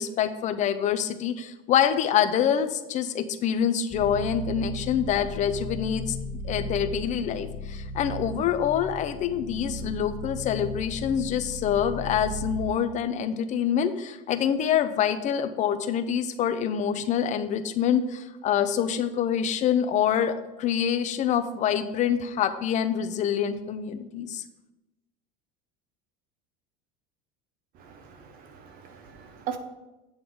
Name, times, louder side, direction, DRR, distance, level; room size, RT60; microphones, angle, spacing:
voice 1, 0.0-6.2 6.4-24.4, left 8 dB, 40° left, 10 dB, 0.7 m, -26 dB
sound 1, 3.9-12.6, left 1 dB, 20° left, 1.6 m, -36 dB
voice 2, 27.8-29.6, right 9 dB, 55° right, 7 dB, 1.2 m, -39 dB
8.8 x 3.8 x 6.2 m, 1.0 s
supercardioid pair, 120°, 18 cm